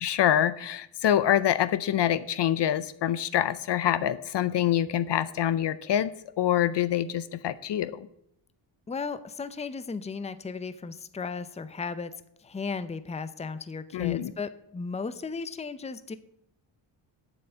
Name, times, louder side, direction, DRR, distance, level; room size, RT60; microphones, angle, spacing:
voice 1, 0.0-6.1 6.4-8.1 13.9-14.3, left 11 dB, 55° left, 15 dB, 0.6 m, -25 dB
voice 2, 8.9-12.1 12.4-16.2, left 4 dB, 15° left, 13 dB, 0.6 m, -35 dB
8.5 x 7.1 x 7.8 m, 0.76 s
cardioid pair, 105°, 49 cm